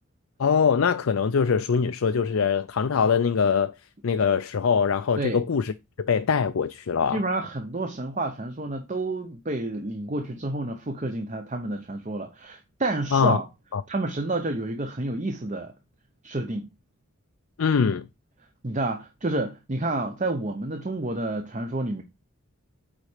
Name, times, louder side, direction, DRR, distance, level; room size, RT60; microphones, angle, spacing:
voice 1, 0.4-3.7 4.0-7.2 13.1-13.4 13.7-13.8 17.6-18.1, left 6 dB, 70° left, 0.5 m, -23 dB
voice 2, 7.1-13.5 13.9-15.7 16.2-16.7 18.6-22.0, right 2 dB, 35° right, 0.8 m, -29 dB
9.0 x 4.2 x 4.9 m
head